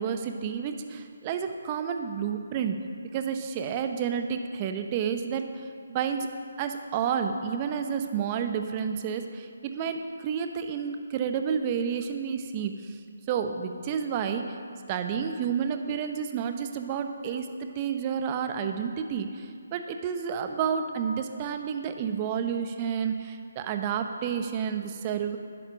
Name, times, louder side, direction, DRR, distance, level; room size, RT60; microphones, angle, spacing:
voice 1, 0.0-2.8 3.1-6.3 6.6-13.0 13.3-14.4 14.9-25.4, right 7 dB, 30° right, 7 dB, 0.9 m, -30 dB
11.0 x 9.9 x 6.2 m, 2.2 s
figure-of-eight pair, 145°, 0 cm